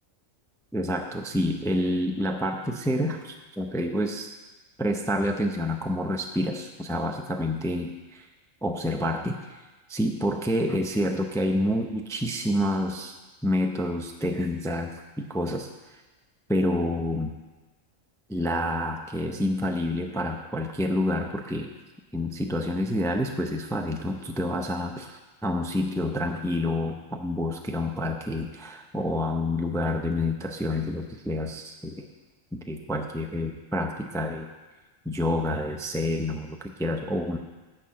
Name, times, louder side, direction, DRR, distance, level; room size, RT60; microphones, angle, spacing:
voice 1, 0.7-4.3 4.8-8.3 8.6-9.6 9.9-13.1 13.4-14.9 15.2-16.0 16.5-17.3 18.3-21.7 22.1-32.1 32.5-34.5 35.0-37.4, left 1 dB, 5° left, 4 dB, 0.4 m, -28 dB
11.0 x 4.4 x 7.5 m, 1.2 s
omnidirectional pair, 1.3 m